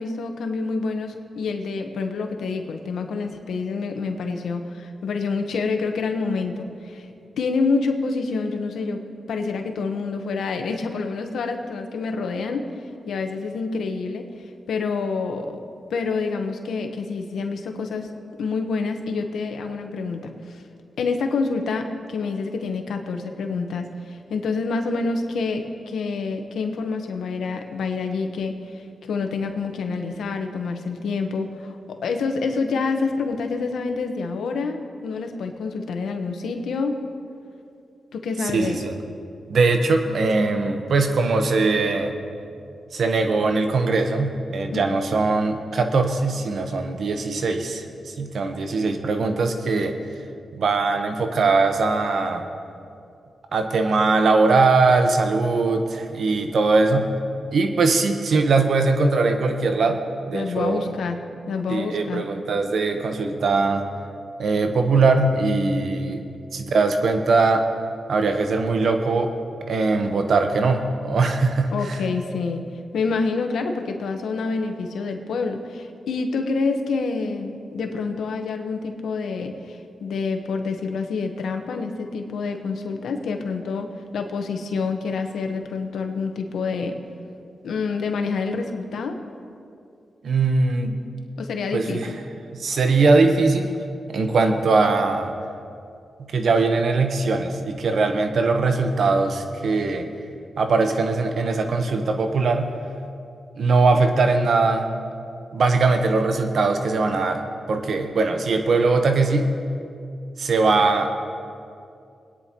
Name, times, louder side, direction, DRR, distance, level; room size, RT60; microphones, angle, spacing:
voice 1, 0.0-7.1 7.4-9.0 9.3-12.7 13.1-14.3 14.7-15.6 15.9-18.1 18.4-20.6 21.0-28.8 29.1-37.0 38.1-38.8 44.7-44.9 60.3-61.2 61.5-62.2 71.7-72.6 72.9-83.9 84.1-87.0 87.6-89.2 91.4-92.1, left 4 dB, 85° left, 5 dB, 1.1 m, -27 dB
voice 2, 38.5-38.9 39.5-42.1 42.9-49.9 50.5-52.4 53.5-57.1 57.5-60.0 60.3-60.9 61.7-63.8 64.4-67.6 68.1-69.3 69.7-72.0 90.2-91.0 91.7-92.1 92.5-93.7 94.1-95.3 96.2-100.1 100.6-102.7 103.6-104.9 105.5-107.4 107.7-109.5 110.4-111.1, right 3 dB, 70° right, 5 dB, 1.1 m, -21 dB
23.0 x 9.7 x 3.0 m, 2.5 s
cardioid pair, 60°, 0 cm